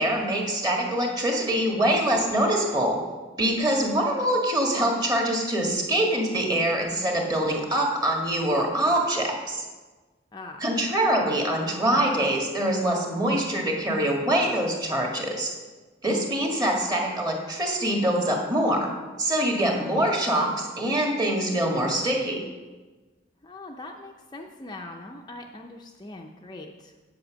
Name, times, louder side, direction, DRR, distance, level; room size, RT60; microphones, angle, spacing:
voice 1, 0.0-3.0 3.4-9.6 10.6-15.5 16.0-18.9 19.2-22.4, right 1 dB, 20° right, 0 dB, 1.7 m, -24 dB
voice 2, 10.3-10.7 23.4-26.9, left 2 dB, 25° left, 2 dB, 0.6 m, -41 dB
8.3 x 7.9 x 6.2 m, 1.3 s
head